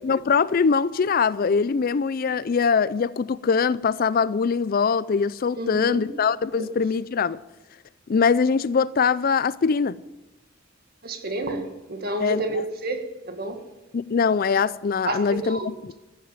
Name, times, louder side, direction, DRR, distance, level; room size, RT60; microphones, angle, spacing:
voice 1, 0.0-7.4 8.1-10.0 12.2-12.4 13.9-15.9, left 5 dB, 45° left, 0.4 m, -22 dB
voice 2, 5.6-6.0 6.6-6.7 11.0-13.6 15.1-15.9, right 2 dB, 50° right, 2.0 m, -30 dB
14.5 x 9.0 x 9.0 m
head